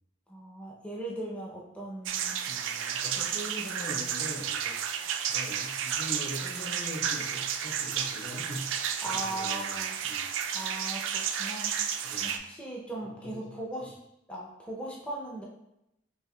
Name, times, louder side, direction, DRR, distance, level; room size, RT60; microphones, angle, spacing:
voice 1, 0.3-2.5 9.0-10.0 10.5-11.7 12.2-13.9 14.3-15.4, right 1 dB, 5° left, -4 dB, 0.5 m, -38 dB
sound 1, 2.1-12.4, right 8 dB, 85° right, 0.3 m, -32 dB
voice 2, 2.5-4.8 5.3-8.7 9.0-10.2 12.0-12.4 13.0-13.5, equal, 75° left, -4 dB, 1.3 m, -41 dB
5.3 x 3.1 x 2.2 m, 0.86 s
head